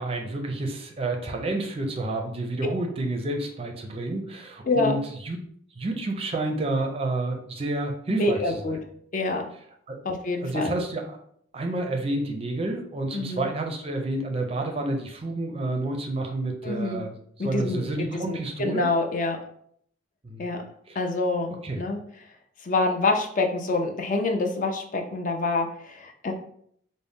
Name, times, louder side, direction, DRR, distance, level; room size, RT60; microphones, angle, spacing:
voice 1, 0.0-5.0 5.2-5.4 5.8-8.6 9.9-10.0 10.4-11.1 11.5-18.9 20.2-20.4 20.9-21.0 21.6-21.8, right 2 dB, 30° right, 3 dB, 0.5 m, -29 dB
voice 2, 4.6-4.9 8.1-8.8 9.1-9.5 10.0-10.7 13.1-13.5 16.6-17.0 17.4-19.4 20.4-20.6 20.9-22.0 22.6-26.3, left 2 dB, 40° left, 4 dB, 0.4 m, -26 dB
3.9 x 2.0 x 3.5 m, 0.65 s
head